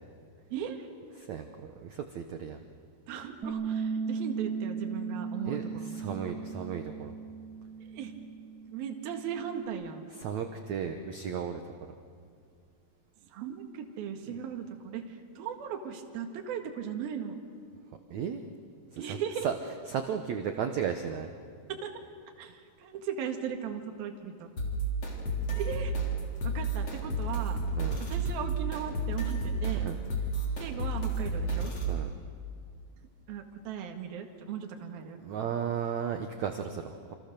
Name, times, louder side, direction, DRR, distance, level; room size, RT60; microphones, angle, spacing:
voice 1, 0.5-0.9 3.1-6.2 7.8-8.2 8.7-10.1 13.3-17.4 19.0-19.5 21.7-21.9 22.4-24.5 25.5-25.9 26.4-27.6 28.0-29.9 30.6-31.7 33.3-35.2, right 8 dB, 65° right, 4 dB, 3.6 m, -38 dB
voice 2, 1.2-2.6 5.4-7.1 10.2-11.9 18.1-18.4 18.9-19.2 19.4-19.5 19.9-21.3 27.8-28.0 29.7-30.0 31.9-32.1 35.2-37.1, right 7 dB, 85° right, 6 dB, 1.6 m, -34 dB
Bass guitar, 3.4-9.7, right 5 dB, 35° right, 1.7 m, -37 dB
sound 1, 24.6-32.0, right 2 dB, 35° left, 4.2 m, -31 dB
28.5 x 28.0 x 6.8 m, 2.3 s
omnidirectional pair, 4.9 m